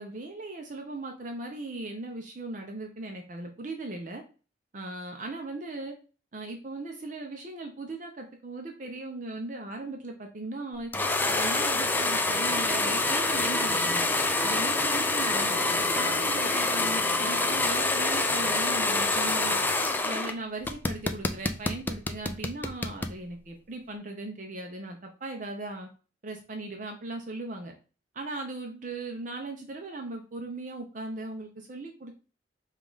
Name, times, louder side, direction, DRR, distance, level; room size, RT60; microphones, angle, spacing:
voice 1, 0.0-4.2 4.7-5.9 6.3-10.9 11.4-14.1 14.4-19.6 20.0-25.9 26.2-27.7 28.1-32.2, right 2 dB, 45° right, 3 dB, 0.6 m, -38 dB
sound 1, 10.9-20.3 20.6-23.1, left 2 dB, 10° left, 0.3 m, -26 dB
5.1 x 2.4 x 3.8 m, 0.35 s
head